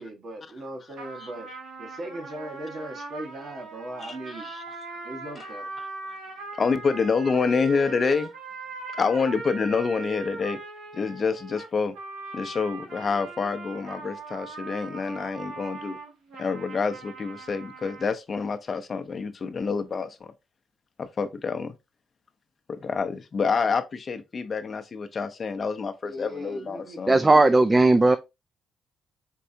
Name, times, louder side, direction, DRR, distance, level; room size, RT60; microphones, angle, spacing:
voice 1, 0.0-1.5 1.8-4.5 5.0-5.7 26.0-27.0 27.3-27.6, right 1 dB, 55° right, 1.4 m, -38 dB
sound 1, 0.9-18.1, right 3 dB, 75° right, 1.9 m, -40 dB
voice 2, 6.6-8.3 9.0-10.6 10.9-11.9 12.3-16.0 16.4-20.3 21.0-21.7 22.7-27.4, left 5 dB, 45° left, 0.6 m, -27 dB
voice 3, 27.1-28.2, right 2 dB, 25° right, 0.4 m, -17 dB
4.5 x 3.2 x 2.7 m
supercardioid pair, 60°, 0 cm